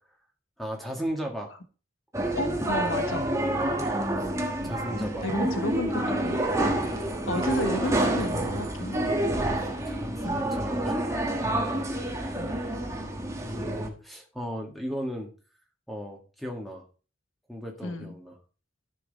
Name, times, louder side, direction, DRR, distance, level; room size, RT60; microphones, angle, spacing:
voice 1, 0.6-1.5 3.5-3.8 4.6-5.2 8.1-8.2 9.6-11.0 11.4-12.0 13.4-15.3 15.9-16.8 17.5-18.3, equal, ahead, 1 dB, 1.9 m, -36 dB
sound 1, 2.1-13.9, right 1 dB, 15° right, 1.4 m, -28 dB
voice 2, 2.3-3.3 4.6-6.4 7.3-9.0 10.2-10.4 12.4-12.6 17.8-18.1, left 1 dB, 80° left, 10 dB, 1.2 m, -32 dB
12.5 x 6.1 x 4.2 m, 0.35 s
head